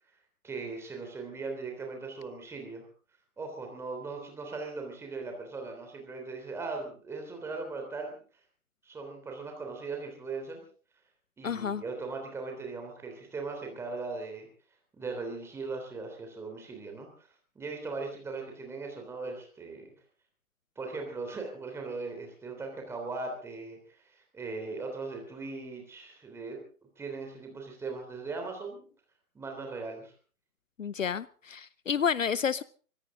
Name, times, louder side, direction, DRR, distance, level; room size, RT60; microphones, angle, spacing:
voice 1, 0.4-2.9 3.4-8.2 8.8-10.6 11.4-14.5 14.9-17.3 17.5-19.9 20.7-26.6 27.0-28.9 29.3-30.1, right 3 dB, 5° right, 3 dB, 3.3 m, -39 dB
voice 2, 11.4-11.8 30.8-32.6, left 7 dB, 60° left, 20 dB, 0.7 m, -30 dB
24.0 x 14.5 x 3.8 m, 0.41 s
figure-of-eight pair, 135°, 44 cm